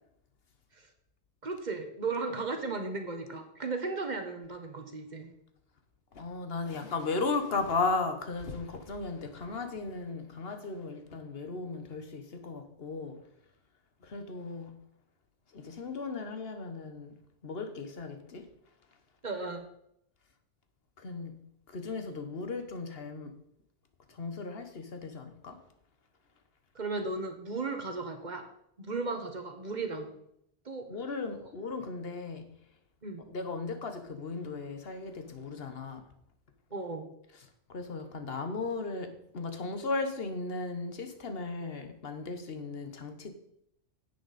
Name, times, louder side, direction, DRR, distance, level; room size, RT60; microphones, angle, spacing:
voice 1, 1.4-5.3 19.2-19.6 26.7-28.5 28.8-30.1 30.6-30.9 33.0-33.2 36.7-37.1, right 3 dB, 40° right, 1.2 m, -35 dB
voice 2, 6.1-13.2 14.0-14.8 15.5-17.2 17.4-18.5 21.0-21.4 21.7-23.4 24.1-25.6 30.9-32.5 33.3-36.0 37.3-43.3, left 3 dB, 55° left, 1.3 m, -36 dB
10.0 x 8.5 x 4.2 m
omnidirectional pair, 1.2 m